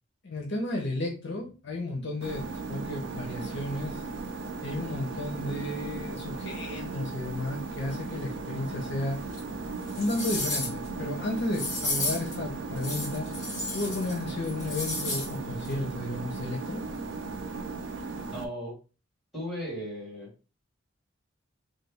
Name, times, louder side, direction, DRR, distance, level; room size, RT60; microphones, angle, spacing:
voice 1, 0.2-4.0 4.6-9.2 10.0-13.3 13.7-16.8, left 1 dB, 60° left, 1 dB, 0.8 m, -33 dB
sound 1, 2.2-18.5, right 3 dB, 65° right, 0.5 m, -37 dB
sound 2, 9.3-9.4 9.9-10.9 11.5-12.3 12.8-14.2 14.4-15.3 15.6-15.7, left 2 dB, 40° left, 1.6 m, -33 dB
voice 2, 18.3-18.7 19.3-20.3, equal, ahead, -8 dB, 1.8 m, -36 dB
3.2 x 2.2 x 3.3 m, 0.33 s
head